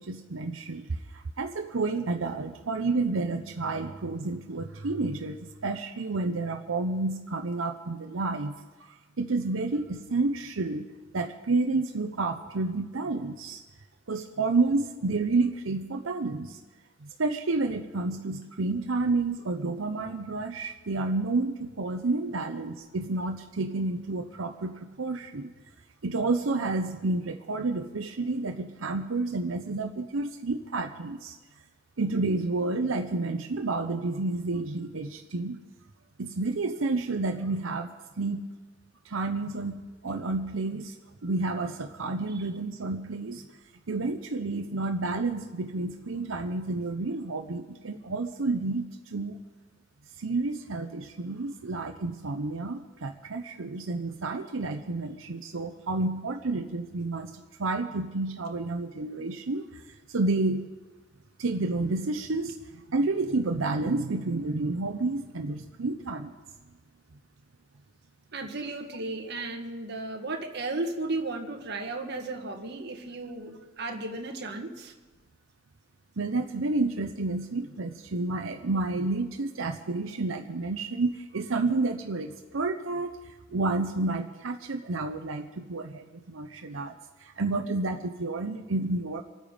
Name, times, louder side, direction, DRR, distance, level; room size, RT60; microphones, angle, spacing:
voice 1, 0.0-10.9 11.1-13.6 14.1-16.6 17.0-25.5 26.0-31.4 32.0-35.6 36.2-38.5 39.0-40.9 41.2-43.4 43.9-49.4 50.2-60.7 61.4-66.3 76.2-86.9 87.2-89.2, right 3 dB, 90° right, 5 dB, 0.8 m, -30 dB
voice 2, 68.3-74.9, right 2 dB, 55° right, 3 dB, 1.6 m, -34 dB
25.5 x 9.1 x 5.1 m, 1.3 s
head